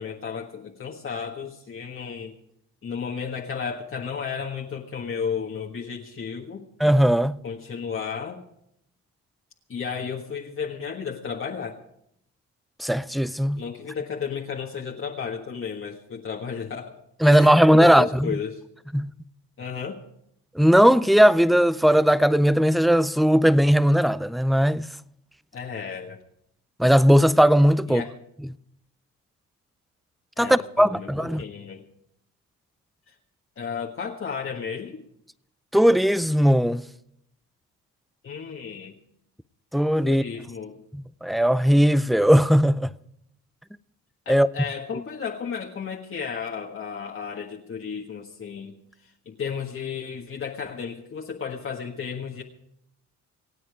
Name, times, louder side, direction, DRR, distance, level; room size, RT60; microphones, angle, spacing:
voice 1, 0.0-2.3 2.8-6.6 7.4-8.4 9.7-11.8 13.6-16.9 17.2-18.6 19.6-20.0 25.5-26.2 27.9-28.1 30.4-31.8 33.1-33.2 33.6-35.0 38.2-38.9 40.0-40.8 44.2-48.7 49.2-52.4, left 6 dB, 45° left, 1.6 m, -33 dB
voice 2, 6.8-7.4 12.8-13.6 17.2-18.3 18.9-19.1 20.6-24.9 26.8-28.0 30.4-31.4 35.7-36.8 39.7-40.2 40.9-42.9 44.3-44.5, equal, ahead, 0.5 m, -18 dB
26.0 x 8.8 x 4.9 m
cardioid pair, 90°, 30 cm